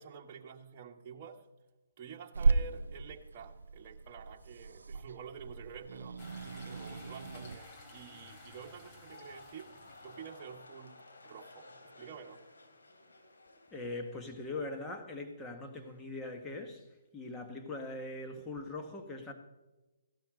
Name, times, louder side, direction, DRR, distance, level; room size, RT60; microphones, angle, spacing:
voice 1, 0.0-1.4 2.0-6.2 6.6-12.4, right 7 dB, 35° right, 1.7 m, -49 dB
Growling / Hiss, 2.3-7.6, right 4 dB, 80° right, 0.7 m, -35 dB
sound 1, 6.2-10.7, left 2 dB, 30° left, 3.3 m, -53 dB
sound 2, 8.9-15.2 15.5-16.0, left 2 dB, 85° left, 3.1 m, -56 dB
voice 2, 13.7-16.8 17.1-19.3, left 2 dB, 15° left, 1.7 m, -41 dB
15.5 x 12.0 x 4.0 m
hypercardioid pair, 145°, 0 cm